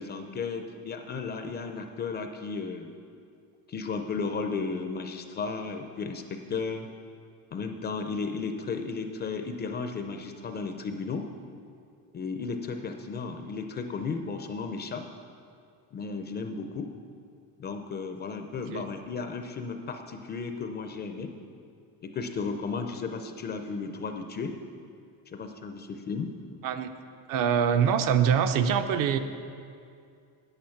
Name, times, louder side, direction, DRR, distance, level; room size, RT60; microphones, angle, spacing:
voice 1, 0.0-2.9 3.7-6.9 7.5-11.3 12.1-15.1 15.9-16.9 17.6-21.3 22.0-24.6 25.3-26.3, left 4 dB, 25° left, 5 dB, 0.4 m, -34 dB
voice 2, 18.6-18.9 26.6-26.9 27.3-29.2, right 7 dB, 55° right, 8 dB, 0.6 m, -24 dB
8.9 x 8.8 x 5.8 m, 2.3 s
cardioid pair, 160°, 40 cm